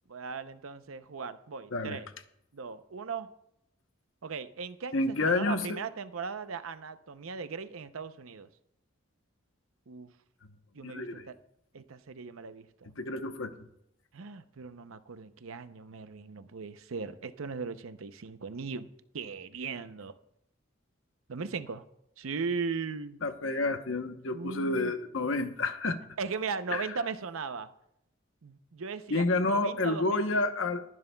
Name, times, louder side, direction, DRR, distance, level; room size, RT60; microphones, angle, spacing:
voice 1, 0.1-2.1 2.5-3.3 4.2-8.5 9.9-10.1 10.7-11.4 11.7-12.9 14.1-18.9 19.1-20.1 21.3-21.8 22.2-23.2 24.3-24.9 26.2-27.7 28.4-30.2, right 5 dB, 85° right, 11 dB, 0.6 m, -38 dB
voice 2, 4.9-5.8 10.8-11.3 13.0-13.5 23.2-26.0 26.7-26.9 29.1-30.8, left 2 dB, 75° left, 8 dB, 0.9 m, -29 dB
21.0 x 11.0 x 2.3 m, 0.78 s
head